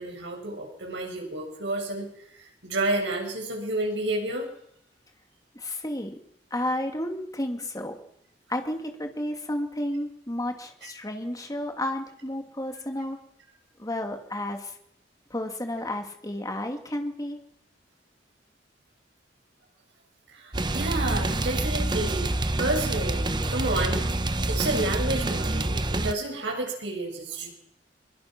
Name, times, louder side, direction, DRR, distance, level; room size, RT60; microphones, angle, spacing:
voice 1, 0.0-2.1 2.6-4.5 10.8-10.9 20.3-22.3 22.6-24.0 24.5-27.5, right 2 dB, 75° right, 1 dB, 7.3 m, -30 dB
voice 2, 5.5-6.2 6.5-8.0 8.5-13.2 13.8-14.7 15.3-17.4, left 1 dB, 20° left, 5 dB, 2.5 m, -32 dB
sound 1, 20.5-26.1, right 2 dB, 25° right, 1.0 m, -27 dB
24.0 x 23.0 x 6.1 m, 0.72 s
head